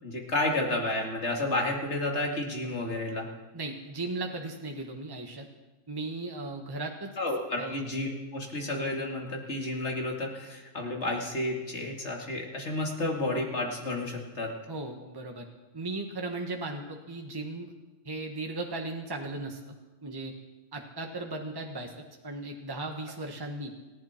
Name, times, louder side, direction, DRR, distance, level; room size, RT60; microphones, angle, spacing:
voice 1, 0.0-3.3 7.2-14.5, left 2 dB, 65° left, 0 dB, 2.8 m, -31 dB
voice 2, 3.5-5.4 5.9-7.1 7.6-7.8 14.7-15.5 15.7-17.7 18.0-19.8 20.0-20.3 20.7-21.9 22.2-23.7, right 2 dB, 20° right, 2 dB, 1.3 m, -36 dB
28.5 x 11.5 x 4.5 m, 1.2 s
omnidirectional pair, 1.3 m